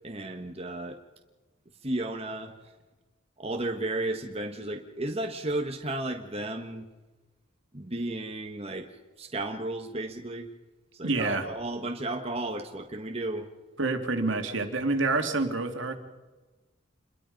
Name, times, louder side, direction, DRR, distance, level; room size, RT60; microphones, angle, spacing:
voice 1, 0.0-1.0 1.8-2.5 3.4-6.9 7.7-8.9 9.2-10.5 10.9-13.5, right 2 dB, 30° right, 3 dB, 1.4 m, -33 dB
voice 2, 11.0-11.5 13.8-16.0, right 3 dB, 65° right, 6 dB, 2.4 m, -27 dB
28.0 x 22.0 x 5.3 m, 1.2 s
head